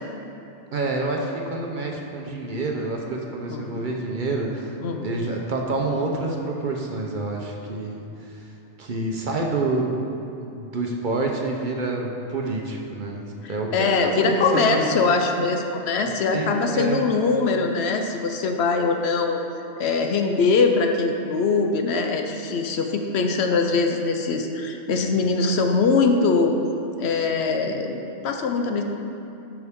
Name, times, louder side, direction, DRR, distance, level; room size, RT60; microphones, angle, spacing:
voice 1, 0.7-4.7 5.0-8.4 8.8-10.1 10.4-15.0 16.3-17.0, right 2 dB, 50° right, 0 dB, 0.8 m, -28 dB
voice 2, 3.5-3.9 4.8-5.1 13.4-19.4 19.8-26.6 27.0-28.8, left 4 dB, 70° left, 4 dB, 0.9 m, -22 dB
11.0 x 5.9 x 3.6 m, 2.8 s
omnidirectional pair, 1.2 m